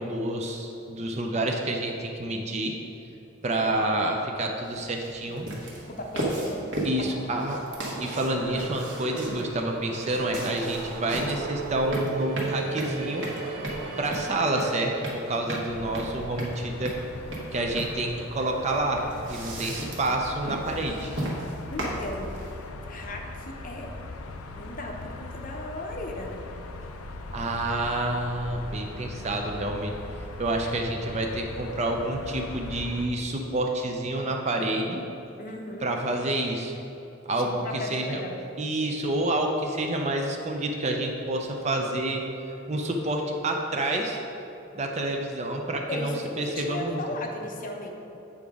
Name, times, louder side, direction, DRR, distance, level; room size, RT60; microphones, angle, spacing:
voice 1, 0.0-2.8 3.4-5.5 6.8-7.6 8.0-13.3 14.0-17.0 17.5-21.1 27.3-29.9 30.4-35.0 35.8-36.7 37.3-38.2 38.6-42.2 42.7-44.2 44.7-47.0, right 1 dB, 30° right, 2 dB, 0.5 m, -28 dB
sound 1, 4.6-22.7, right 1 dB, 55° right, 1.2 m, -36 dB
voice 2, 5.8-6.7 7.0-7.1 21.7-22.4 22.9-23.9 24.6-26.4 35.4-35.9 37.4-38.4 45.9-47.9, left 2 dB, 40° left, 2 dB, 0.7 m, -36 dB
sound 2, 7.0-15.2, right 4 dB, 80° right, 0.8 m, -38 dB
sound 3, 15.7-33.1, left 2 dB, 85° left, 0.5 m, -40 dB
8.4 x 5.0 x 3.5 m, 2.9 s
head